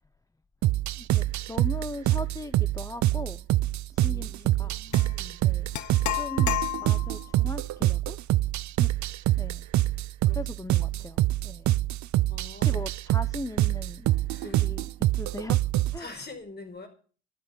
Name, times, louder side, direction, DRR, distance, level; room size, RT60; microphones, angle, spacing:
sound 1, 0.6-16.0, right 15 dB, 70° right, 0.6 m, -25 dB
voice 1, 1.0-3.5 3.9-4.8 5.4-5.7 6.1-8.2 8.8-9.0 9.4-9.7 10.3-11.7 12.5-14.1 14.4-14.9 15.2-15.6 15.9-16.1, left 2 dB, 10° left, 0.7 m, -39 dB
voice 2, 4.0-5.4 10.3-10.4 10.9-11.0 12.3-12.8 14.3-14.6 16.0-16.9, left 3 dB, 35° left, 4.9 m, -45 dB
sound 2, 4.9-5.1 5.7-7.2, left 15 dB, 70° left, 0.8 m, -31 dB
12.0 x 8.9 x 8.7 m
cardioid pair, 90°, 30 cm